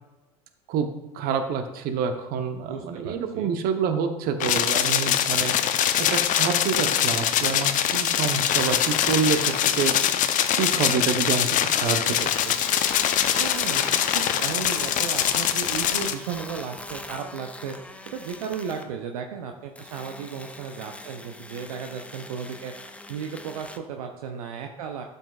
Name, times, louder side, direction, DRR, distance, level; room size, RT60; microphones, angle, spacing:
voice 1, 0.7-5.5 6.0-9.9 10.5-12.5, right 6 dB, 50° right, 7 dB, 0.9 m, -27 dB
voice 2, 2.7-3.6 13.4-13.8 14.1-25.0, right 7 dB, 70° right, 4 dB, 0.6 m, -35 dB
sound 1, 4.4-16.1, left 10 dB, 40° left, 0.6 m, -23 dB
sound 2, 8.5-10.0 12.1-18.9 19.7-23.8, left 2 dB, 5° left, 0.6 m, -40 dB
12.0 x 5.5 x 2.4 m, 1.1 s
hypercardioid pair, 75°, 19 cm